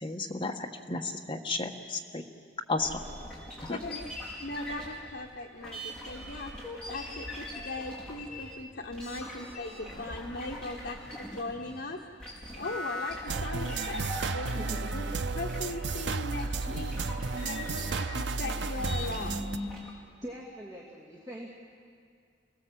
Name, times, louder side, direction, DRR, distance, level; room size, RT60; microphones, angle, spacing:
voice 1, 0.0-2.2 2.7-3.0 3.6-3.8, left 3 dB, 30° left, 2 dB, 1.5 m, -33 dB
sound 1, 2.8-11.8 12.1-19.9, left 1 dB, 5° left, 5.0 m, -41 dB
voice 2, 3.7-12.0 12.5-14.5 14.9-15.0 15.3-16.9 17.4-19.5, left 2 dB, 65° left, 0 dB, 1.2 m, -39 dB
sound 2, 13.3-19.6, right 3 dB, 85° right, 0.7 m, -33 dB
voice 3, 14.6-14.9 20.2-21.5, equal, 25° right, -5 dB, 2.7 m, -42 dB
28.0 x 18.0 x 7.8 m, 2.3 s
head